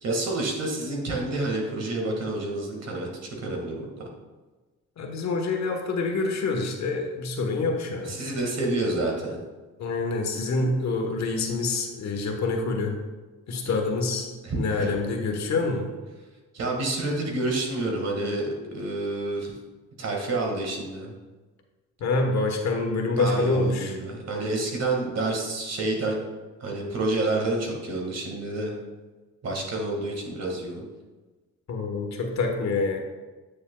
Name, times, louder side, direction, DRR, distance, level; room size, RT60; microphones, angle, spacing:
voice 1, 0.0-3.1 3.4-4.1 8.1-9.4 13.6-13.7 14.4-15.0 16.5-19.5 20.0-21.1 23.2-26.2 26.6-28.8 29.4-30.8, right 2 dB, 55° right, 0 dB, 1.9 m, -28 dB
voice 2, 5.0-8.1 9.8-12.9 13.5-14.3 14.5-15.9 22.0-23.9 31.7-33.0, left 3 dB, 65° left, 3 dB, 1.2 m, -26 dB
8.7 x 6.8 x 2.3 m, 1.3 s
cardioid pair, 90°, 30 cm